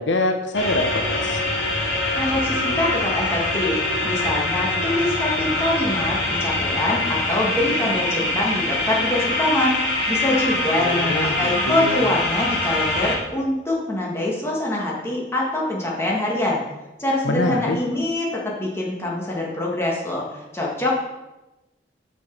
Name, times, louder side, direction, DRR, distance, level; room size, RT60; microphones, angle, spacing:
voice 1, 0.0-1.4 10.8-12.0 17.2-17.8, left 2 dB, 85° left, 5 dB, 0.9 m, -25 dB
sound 1, 0.5-13.2, left 2 dB, 65° left, 2.5 m, -24 dB
voice 2, 2.1-3.8 4.0-9.8 10.1-16.6 17.0-20.9, left 1 dB, 15° left, -4 dB, 1.7 m, -24 dB
6.3 x 6.3 x 5.9 m, 1.0 s
head